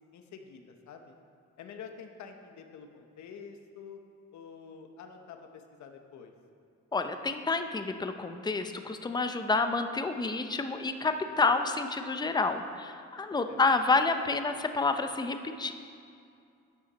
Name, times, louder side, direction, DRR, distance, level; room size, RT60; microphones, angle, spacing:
voice 1, 0.1-1.1 1.6-4.0 4.3-6.3 13.5-13.6, left 6 dB, 70° left, 5 dB, 1.0 m, -48 dB
voice 2, 6.9-15.7, left 3 dB, 15° left, 7 dB, 0.6 m, -29 dB
12.0 x 8.3 x 4.1 m, 2.4 s
cardioid pair, 90°, 30 cm